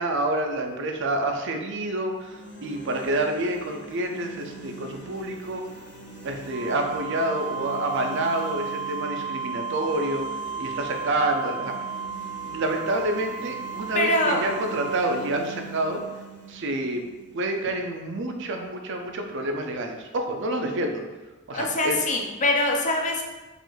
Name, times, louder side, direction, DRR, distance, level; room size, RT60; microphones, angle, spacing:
voice 1, 0.0-5.6 6.2-10.3 10.6-11.7 12.4-16.0 16.5-17.0 17.3-21.0 21.5-22.0, right 1 dB, 60° right, 4 dB, 0.5 m, -28 dB
sound 1, 2.0-18.1, right 4 dB, 55° left, 1.0 m, -43 dB
Wind instrument woodwind instrument, 6.5-15.0, right 6 dB, 90° left, 1.0 m, -34 dB
voice 2, 13.9-14.4 21.5-23.2, left 1 dB, 35° left, 1 dB, 0.6 m, -23 dB
4.9 x 2.5 x 3.9 m, 1.2 s
head